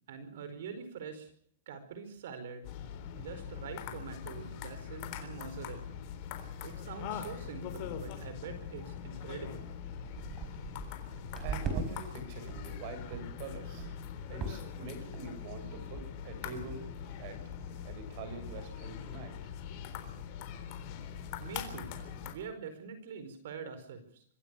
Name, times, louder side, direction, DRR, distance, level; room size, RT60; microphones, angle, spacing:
voice 1, 0.1-1.3 1.7-2.7 3.1-5.9 6.6-9.7 21.4-22.0 22.2-24.2, right 6 dB, 70° right, 10 dB, 4.7 m, -44 dB
sound 1, 2.6-22.3, left 8 dB, 40° left, 3.8 m, -42 dB
sound 2, 7.0-7.3 7.5-7.8 8.4-8.5 9.2-9.3 9.6-11.9 12.2-12.8 13.1-13.3 13.8-14.1 14.4-14.8 15.1-15.5 16.0-16.1 16.4-16.5 16.7-17.1 17.5-17.7 18.0-18.1 18.3-18.7 19.1-19.2, right 5 dB, 20° right, 4.8 m, -41 dB
voice 2, 11.4-13.9 14.3-16.8 17.2-17.4 17.8-19.3, right 4 dB, 45° right, 9 dB, 6.8 m, -45 dB
25.5 x 15.5 x 6.9 m, 0.64 s
supercardioid pair, 155°, 0 cm